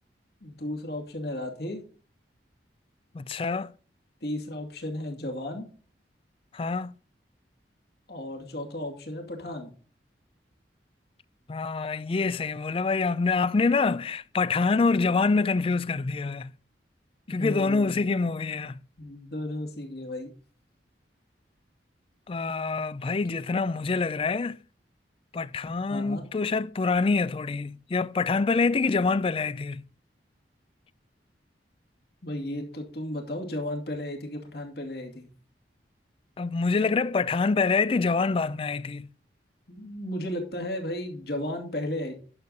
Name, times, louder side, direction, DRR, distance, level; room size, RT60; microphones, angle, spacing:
voice 1, 0.4-1.8 4.2-5.7 8.1-9.7 17.4-18.2 19.0-20.3 23.2-23.4 25.9-26.3 32.2-35.3 39.7-42.1, left 1 dB, 65° left, 2.5 m, -34 dB
voice 2, 3.1-3.7 6.5-6.9 11.5-16.5 17.3-18.8 22.3-24.6 25.3-29.8 36.4-39.1, left 4 dB, 30° left, 0.4 m, -26 dB
11.0 x 7.0 x 4.0 m
head